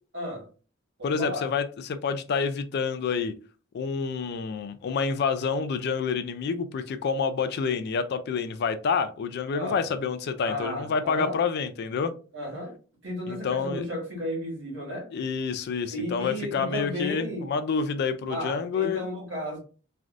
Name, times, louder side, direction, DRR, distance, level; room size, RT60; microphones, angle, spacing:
voice 1, 0.1-0.5 1.0-1.5 9.5-9.8 10.4-11.4 12.3-12.8 13.0-15.1 15.9-17.5 18.3-19.6, left 1 dB, 65° right, 1.5 m, -33 dB
voice 2, 1.0-3.3 3.7-12.1 13.3-13.9 15.1-19.1, left 5 dB, 55° left, 0.3 m, -28 dB
3.2 x 2.5 x 2.5 m
head